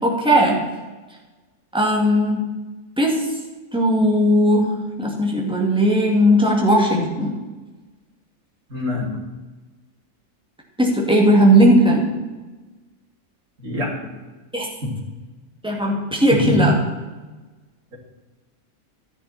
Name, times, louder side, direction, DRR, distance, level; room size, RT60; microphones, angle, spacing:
voice 1, 0.0-0.6 1.7-2.4 3.0-3.2 3.7-4.7 5.0-7.4 10.8-12.1 14.5-14.7 15.6-16.7, equal, 5° right, -2 dB, 2.5 m, -17 dB
voice 2, 8.7-9.1 13.6-14.0 14.8-14.9 16.3-16.7, left 1 dB, 60° right, -5 dB, 3.6 m, -23 dB
12.5 x 10.5 x 4.4 m, 1.2 s
omnidirectional pair, 1.6 m